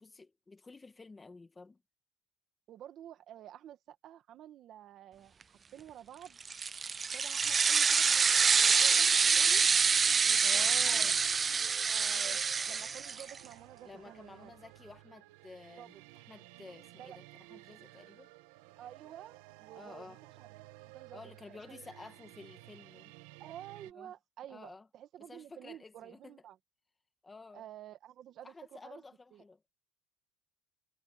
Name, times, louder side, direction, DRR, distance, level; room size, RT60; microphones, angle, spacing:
voice 1, 0.0-1.8 10.4-11.2 13.8-16.0 16.3-18.3 19.7-20.2 21.1-23.1 24.0-24.1 24.5-24.9 25.2-26.4 27.2-27.7 28.4-29.6, left 3 dB, 15° left, 1.6 m, -51 dB
voice 2, 2.7-6.4 7.0-9.1 9.3-9.7 10.2-12.4 12.7-14.5 15.8-15.9 17.0-17.2 18.8-20.5 20.9-21.2 21.5-21.9 23.4-26.6 27.5-29.0 29.3-29.4, right 11 dB, 40° right, 2.0 m, -51 dB
sound 1, 6.4-13.4, right 5 dB, 20° right, 0.5 m, -27 dB
sound 2, 7.4-23.9, right 19 dB, 85° right, 1.6 m, -54 dB
cardioid pair, 150°, 0 cm